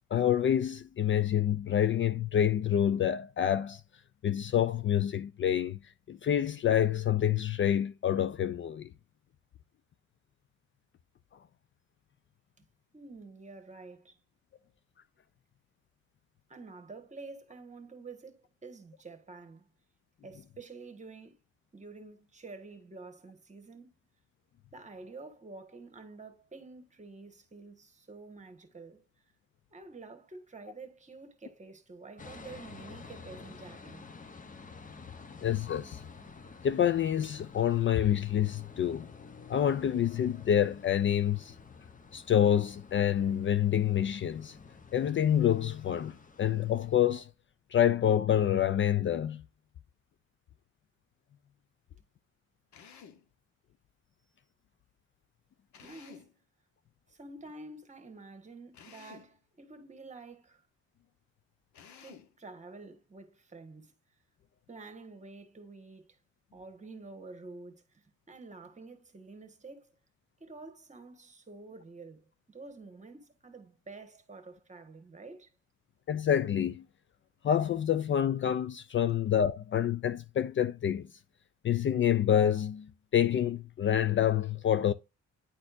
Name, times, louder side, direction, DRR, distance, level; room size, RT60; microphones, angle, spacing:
voice 1, 0.1-3.8 4.2-5.8 6.1-8.9 35.4-36.0 36.6-39.1 39.5-41.5 42.1-44.5 44.9-47.3 47.7-49.4 76.1-76.8 77.4-81.1 81.6-82.9 83.1-84.9, left 10 dB, 40° left, 0.4 m, -27 dB
voice 2, 12.9-14.2 16.5-19.7 20.2-21.4 21.7-23.9 24.7-29.0 29.7-34.1 55.8-56.3 57.1-60.6 62.0-63.9 64.7-66.2 66.5-69.9 70.4-75.5, right 3 dB, 25° right, 1.5 m, -49 dB
sound 1, 32.2-47.3, left 4 dB, 25° left, 0.9 m, -50 dB
Drill, 52.7-53.3 55.7-56.4 58.7-59.4 61.7-62.4, left 7 dB, 70° left, 1.2 m, -53 dB
10.0 x 4.2 x 2.6 m
cardioid pair, 90°, 30 cm